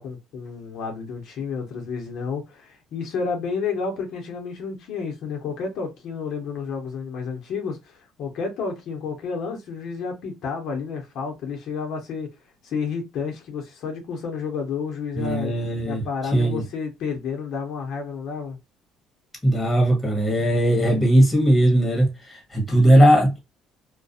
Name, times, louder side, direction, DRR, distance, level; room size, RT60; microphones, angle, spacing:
voice 1, 0.0-12.4 12.6-15.5 15.9-18.6, left 5 dB, 65° left, 0.7 m, -31 dB
voice 2, 15.1-16.0 16.3-16.6 19.4-23.4, right 1 dB, 15° left, 1.2 m, -18 dB
2.4 x 2.2 x 2.6 m
cardioid pair, 120°, 0 cm